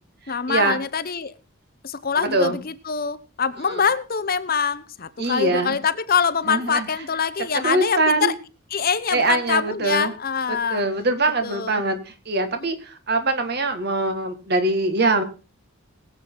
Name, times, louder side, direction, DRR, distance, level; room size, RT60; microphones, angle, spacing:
voice 1, 0.3-1.3 1.8-8.3 8.7-10.9 11.4-11.8, left 6 dB, 40° left, 14 dB, 0.7 m, -24 dB
voice 2, 2.2-2.6 3.7-3.8 5.2-5.8 6.5-6.9 7.5-8.3 9.1-10.1 10.5-15.2, right 2 dB, 45° right, 7 dB, 2.0 m, -23 dB
21.5 x 8.1 x 3.9 m, 0.32 s
head